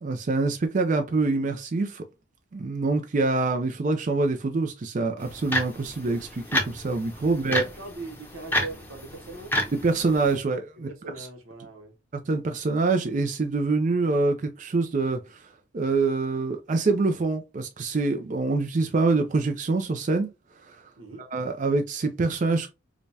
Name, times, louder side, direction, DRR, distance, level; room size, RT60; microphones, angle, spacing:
voice 1, 0.0-2.0 2.5-7.6 9.8-10.9 11.2-11.3 12.3-15.4 15.7-20.3 20.7-20.8 21.2-22.7, right 3 dB, 40° right, 0.4 m, -25 dB
sound 1, 5.2-10.3, equal, 10° left, 0.7 m, -31 dB
voice 2, 7.3-9.6 10.9-11.9 21.0-21.3, right 3 dB, 90° right, 0.9 m, -41 dB
4.9 x 2.2 x 2.7 m
head